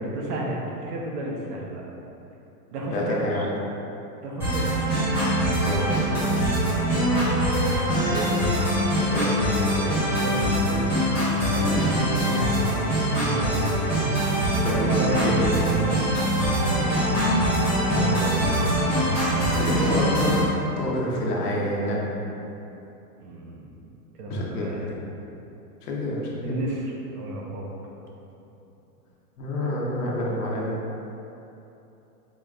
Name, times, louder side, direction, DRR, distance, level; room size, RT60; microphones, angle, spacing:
voice 1, 0.0-1.8 2.7-3.5 4.2-4.9 10.2-12.8 13.3-13.7 14.6-15.4 16.0-17.1 23.2-23.9 24.2-25.0 26.4-27.7, right 1 dB, 75° right, -2 dB, 0.9 m, -32 dB
voice 2, 2.9-3.6 5.6-7.0 8.0-8.3 9.1-9.8 13.9-14.1 14.6-15.6 17.9-18.9 19.5-20.5 20.8-22.3 24.3-25.0 25.8-26.5 29.4-30.8, left 1 dB, 75° left, -3 dB, 1.0 m, -29 dB
sound 1, 4.4-20.4, right 1 dB, 5° right, 0.6 m, -23 dB
4.8 x 2.4 x 3.2 m, 3.0 s
supercardioid pair, 160°, 47 cm